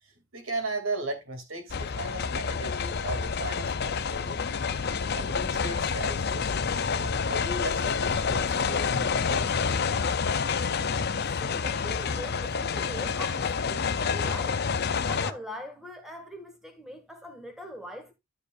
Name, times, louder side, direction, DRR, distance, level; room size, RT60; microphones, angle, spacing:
voice 1, 0.3-4.4 5.1-9.5, right 2 dB, 70° right, 2.7 m, -37 dB
sound 1, 1.7-15.3, left 5 dB, 50° left, 0.6 m, -28 dB
voice 2, 11.4-14.6 15.1-18.1, equal, ahead, 2.0 m, -41 dB
12.5 x 6.8 x 2.6 m
head